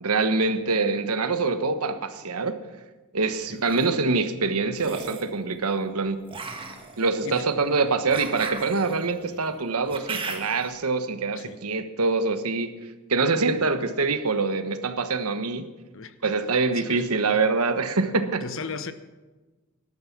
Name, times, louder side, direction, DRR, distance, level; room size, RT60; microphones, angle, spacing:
voice 1, 0.0-2.6 3.1-6.2 7.0-12.7 13.1-15.7 16.2-18.4, right 4 dB, 85° right, 1.2 m, -25 dB
sound 1, 3.4-3.9 4.7-5.3 6.3-10.7, right 3 dB, 25° right, 1.6 m, -37 dB
voice 2, 15.9-16.3 16.7-17.0 18.4-18.9, left 5 dB, 60° left, 1.0 m, -36 dB
18.5 x 12.0 x 6.0 m
head